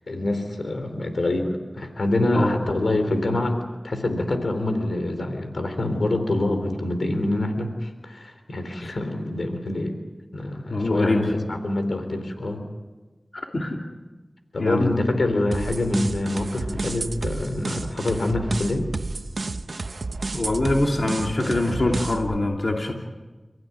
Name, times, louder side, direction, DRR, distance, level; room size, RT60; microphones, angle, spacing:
voice 1, 0.1-3.6 3.8-9.9 10.3-12.6 14.5-18.9, left 2 dB, 90° left, 7 dB, 3.6 m, -25 dB
voice 2, 10.7-11.5 13.3-13.8 14.6-15.0 20.3-22.9, left 2 dB, 65° left, 1 dB, 3.0 m, -24 dB
sound 1, 15.5-22.4, right 3 dB, 85° right, 1.1 m, -31 dB
30.0 x 15.5 x 9.7 m, 1.2 s
wide cardioid pair, 45°, 0 cm